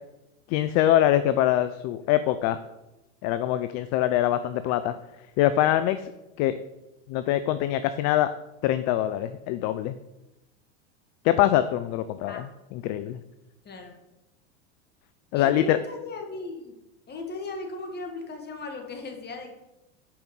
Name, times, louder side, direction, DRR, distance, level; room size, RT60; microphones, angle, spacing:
voice 1, 0.5-2.6 3.2-4.9 5.4-6.1 6.4-6.6 7.1-8.3 8.6-10.0 11.2-13.2 15.3-15.8, left 12 dB, 45° left, 12 dB, 0.5 m, -24 dB
voice 2, 15.3-16.7 17.1-19.5, left 3 dB, 25° left, 3 dB, 1.7 m, -37 dB
5.9 x 5.2 x 6.3 m, 0.96 s
hypercardioid pair, 105°, 38 cm